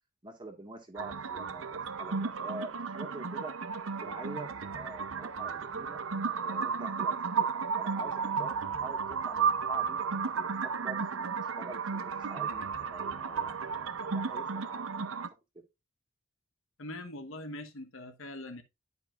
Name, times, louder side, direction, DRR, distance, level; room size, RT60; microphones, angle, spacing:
voice 1, 0.2-3.5 4.0-6.0 6.4-8.6 8.8-10.0 10.3-14.8, right 2 dB, 25° right, 1.8 m, -46 dB
sound 1, 1.0-15.3, right 5 dB, 75° right, 0.7 m, -33 dB
voice 2, 16.8-18.6, left 1 dB, 75° left, 1.2 m, -42 dB
10.5 x 5.3 x 2.5 m
head